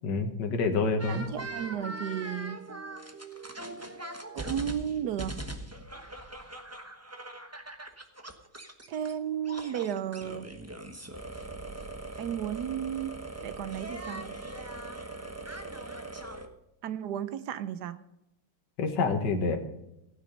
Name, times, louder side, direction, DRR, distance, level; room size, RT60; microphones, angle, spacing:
voice 1, 0.0-1.2 18.8-19.6, left 4 dB, 55° left, 5 dB, 2.0 m, -27 dB
sound 1, 1.0-9.1 9.4-16.5, right 2 dB, 15° right, 0.6 m, -41 dB
voice 2, 1.1-2.7 4.3-5.4 8.9-10.5 12.2-14.4 16.8-18.0, right 9 dB, 65° right, 14 dB, 1.1 m, -34 dB
15.5 x 9.5 x 5.3 m, 0.87 s
omnidirectional pair, 2.3 m